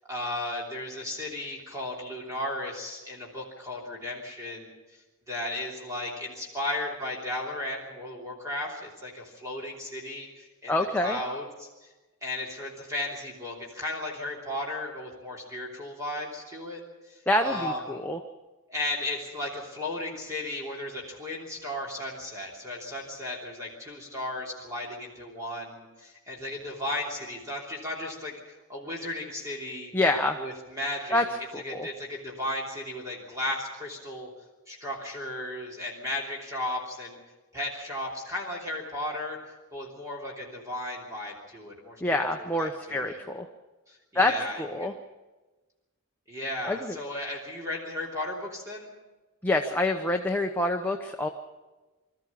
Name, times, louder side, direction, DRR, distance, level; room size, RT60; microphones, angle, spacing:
voice 1, 0.1-4.7 5.3-11.7 12.2-16.8 17.1-18.0 18.7-29.9 30.3-31.2 31.5-34.3 34.7-37.2 37.5-39.4 39.7-43.2 43.9-44.9 46.3-48.9, left 1 dB, 15° right, -2 dB, 3.1 m, -35 dB
voice 2, 10.7-11.2 17.3-18.2 29.9-30.4 31.1-31.2 31.5-31.9 42.0-43.5 44.1-44.3 44.6-44.9 46.6-47.0 49.4-51.3, left 2 dB, 10° left, 3 dB, 0.8 m, -26 dB
22.5 x 14.0 x 8.6 m, 1.2 s
head